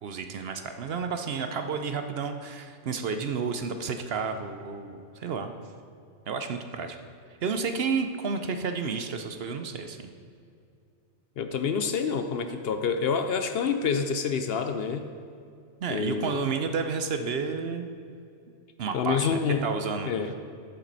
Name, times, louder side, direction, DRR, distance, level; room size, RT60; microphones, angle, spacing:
voice 1, 0.0-5.5 6.3-7.0 7.4-10.1 15.8-17.9 18.8-20.1, right 5 dB, 60° right, 7 dB, 0.8 m, -31 dB
voice 2, 11.4-15.1 15.9-16.4 18.9-19.7 20.1-20.3, left 6 dB, 60° left, 8 dB, 0.7 m, -27 dB
11.0 x 7.4 x 4.0 m, 2.5 s
omnidirectional pair, 1.2 m